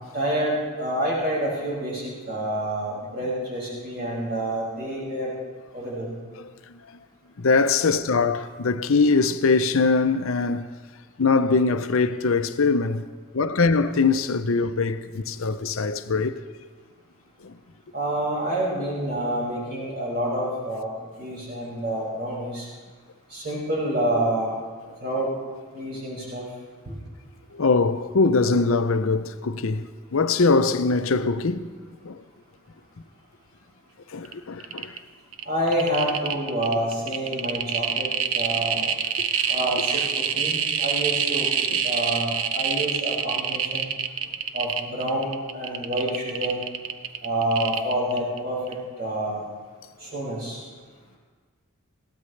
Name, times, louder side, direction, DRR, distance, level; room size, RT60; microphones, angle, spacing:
voice 1, 0.1-5.3 5.7-6.1 17.9-20.9 21.2-22.7 23.3-24.6 25.0-25.3 25.7-26.5 35.5-38.8 39.5-41.5 41.8-43.9 44.5-46.6 47.2-49.5 50.0-50.6, right 1 dB, 45° right, 6.0 m, -28 dB
voice 2, 7.4-10.7 11.2-13.1 13.3-16.4 17.4-17.5 27.5-31.7 32.0-32.2 34.1-35.0 41.7-41.8, left 4 dB, 70° left, 0.6 m, -22 dB
sound 1, 34.2-34.3 34.6-35.0 35.3-48.4 48.7-48.8, right 8 dB, 75° right, 0.8 m, -26 dB
21.0 x 16.5 x 3.3 m
head